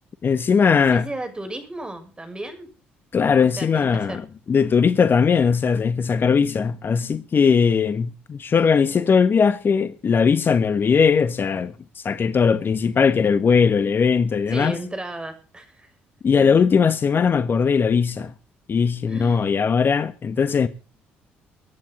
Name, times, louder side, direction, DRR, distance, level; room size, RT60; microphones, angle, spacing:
voice 1, 0.2-1.1 3.1-14.8 16.2-18.3 18.7-20.7, left 6 dB, 45° left, 1.3 m, -19 dB
voice 2, 0.8-2.7 3.6-4.2 8.8-9.0 14.5-15.9 19.1-19.6, right 1 dB, 20° right, 6.5 m, -34 dB
23.0 x 10.5 x 3.7 m
hypercardioid pair, 55°, 5 cm